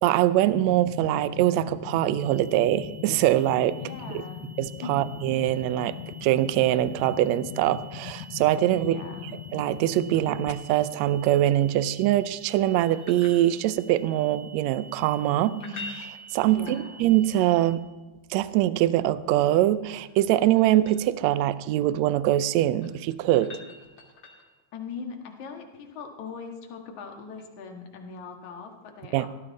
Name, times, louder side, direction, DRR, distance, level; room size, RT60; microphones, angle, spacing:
voice 1, 0.0-3.7 4.6-9.0 9.5-15.5 16.3-17.8 18.3-23.5 29.1-29.3, right 13 dB, 75° right, 15 dB, 1.7 m, -23 dB
sound 1, 0.5-10.5, left 12 dB, 80° left, 1.6 m, -40 dB
sound 2, 2.1-17.8, right 5 dB, 40° right, 0.7 m, -50 dB
voice 2, 3.7-4.4 4.8-5.1 8.7-9.3 15.4-15.9 16.5-17.0 24.7-29.3, left 4 dB, 65° left, 3 dB, 3.1 m, -40 dB
sound 3, 12.8-14.0 15.5-17.3 19.4-21.1 22.5-24.6 27.4-27.5, left 2 dB, 35° left, 3.2 m, -45 dB
17.5 x 13.5 x 4.2 m, 1.2 s
omnidirectional pair, 3.7 m